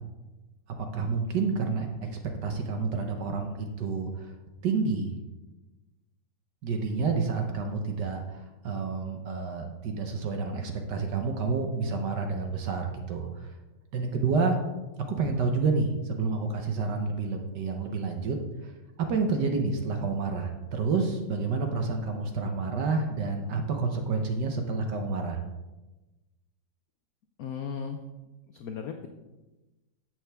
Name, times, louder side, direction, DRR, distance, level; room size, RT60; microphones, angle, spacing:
voice 1, 0.9-1.9 2.4-4.3 4.6-5.1 6.6-13.5 13.9-14.6 15.2-18.4 18.6-18.7 19.1-25.4, right 4 dB, 65° right, 4 dB, 1.4 m, -29 dB
voice 2, 27.4-28.0 28.5-29.1, left 7 dB, 70° left, 5 dB, 0.8 m, -36 dB
10.5 x 7.7 x 3.4 m, 1.1 s
omnidirectional pair, 2.2 m